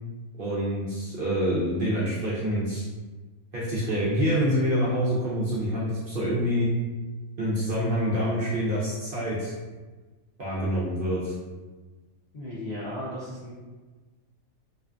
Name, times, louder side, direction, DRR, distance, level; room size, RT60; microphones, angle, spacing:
voice 1, 0.4-2.9 3.5-6.7 7.4-9.5 10.4-11.3, equal, 60° right, -8 dB, 0.5 m, -26 dB
voice 2, 12.3-13.5, left 1 dB, 70° left, -8 dB, 0.4 m, -35 dB
2.5 x 2.4 x 2.3 m, 1.3 s
omnidirectional pair, 1.4 m